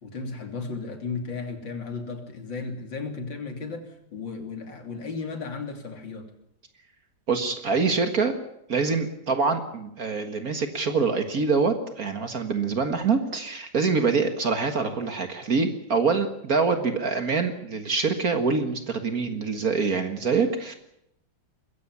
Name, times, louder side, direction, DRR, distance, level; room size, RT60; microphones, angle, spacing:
voice 1, 0.0-6.3, left 4 dB, 90° left, 5 dB, 3.7 m, -35 dB
voice 2, 7.3-8.3 8.7-20.8, right 4 dB, 50° right, 7 dB, 2.0 m, -25 dB
21.5 x 15.5 x 9.7 m, 0.80 s
omnidirectional pair, 2.0 m